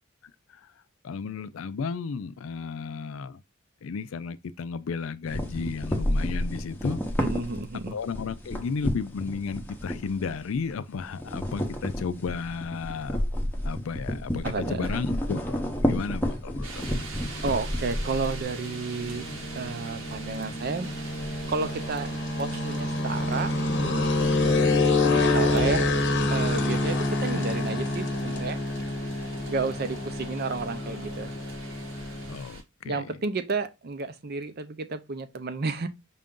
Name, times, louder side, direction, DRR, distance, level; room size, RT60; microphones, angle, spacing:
voice 1, 0.2-0.7 1.0-3.4 3.8-7.0 7.9-13.2 13.6-17.0 32.3-33.2, left 5 dB, 80° left, 0.4 m, -33 dB
sound 1, 5.3-10.7 11.0-18.4, equal, 10° left, 0.7 m, -31 dB
voice 2, 7.2-7.9 14.4-14.8 17.4-19.2 19.5-20.9 21.5-22.1 22.4-23.5 24.4-25.9 26.3-28.6 29.5-31.3 32.8-35.9, right 4 dB, 50° right, 0.6 m, -31 dB
sound 2, 16.6-32.6, right 3 dB, 70° right, 1.1 m, -43 dB
sound 3, 16.8-32.4, left 2 dB, 60° left, 0.8 m, -28 dB
5.6 x 2.5 x 3.6 m
head